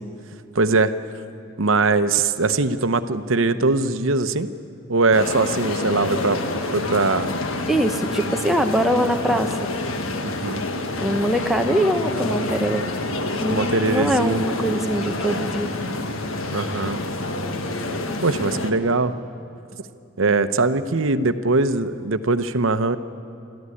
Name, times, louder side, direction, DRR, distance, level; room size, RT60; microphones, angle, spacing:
voice 1, 0.5-0.9 1.6-4.5 4.9-6.4 6.7-7.4 10.2-10.7 13.5-14.4 16.5-17.0 18.2-19.1 20.2-23.0, right 3 dB, 75° right, 11 dB, 0.9 m, -21 dB
sound 1, 5.1-18.7, left 2 dB, 85° left, 1.5 m, -27 dB
voice 2, 7.7-9.7 11.0-12.9 13.4-15.7, right 1 dB, ahead, 4 dB, 1.0 m, -22 dB
24.5 x 14.0 x 9.8 m, 2.6 s
head